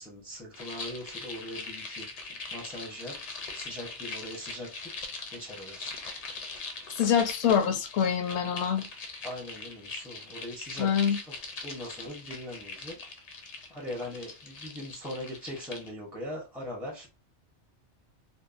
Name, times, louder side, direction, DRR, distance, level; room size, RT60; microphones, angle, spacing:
voice 1, 0.0-3.2 3.5-5.0 5.3-5.9 9.2-11.3 11.6-13.0 13.7-17.1, equal, ahead, 0.5 m, -41 dB
sound 1, 0.5-15.9, left 3 dB, 50° left, 0.5 m, -41 dB
voice 2, 7.0-8.8 10.8-11.2, left 8 dB, 80° left, 0.9 m, -25 dB
2.8 x 2.1 x 2.4 m
omnidirectional pair, 1.2 m